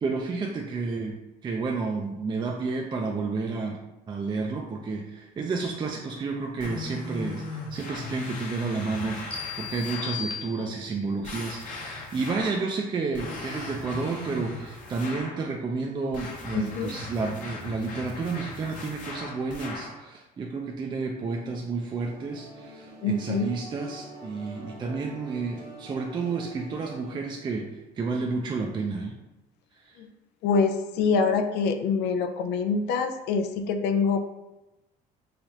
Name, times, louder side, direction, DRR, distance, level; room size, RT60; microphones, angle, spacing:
voice 1, 0.0-1.2 1.4-3.8 4.1-29.1 29.8-30.0, right 4 dB, 25° right, 1 dB, 0.4 m, -31 dB
sound 1, 6.6-10.2 11.2-12.6 13.1-15.4 16.1-20.0, left 3 dB, 50° left, 0.9 m, -38 dB
sound 2, 9.3-11.1, left 8 dB, 5° left, 0.9 m, -37 dB
voice 2, 16.5-16.9 23.0-23.5 30.0-30.1 30.4-34.2, left 5 dB, 80° left, 6 dB, 0.4 m, -25 dB
sound 3, 22.0-27.1, right 2 dB, 80° right, 1.1 m, -45 dB
3.3 x 2.3 x 4.0 m, 0.97 s
cardioid pair, 110°, 17 cm